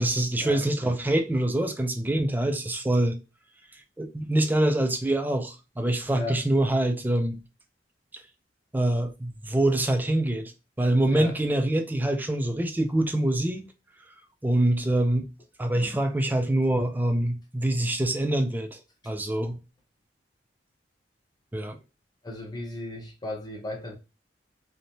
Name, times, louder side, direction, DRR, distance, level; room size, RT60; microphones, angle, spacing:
voice 1, 0.0-3.2 4.0-7.4 8.7-10.5 10.8-13.7 14.4-15.2 15.6-19.6 21.5-21.8, right 1 dB, 10° right, 0.3 m, -25 dB
voice 2, 22.2-24.0, left 2 dB, 25° left, 0.7 m, -35 dB
3.0 x 2.1 x 2.6 m
head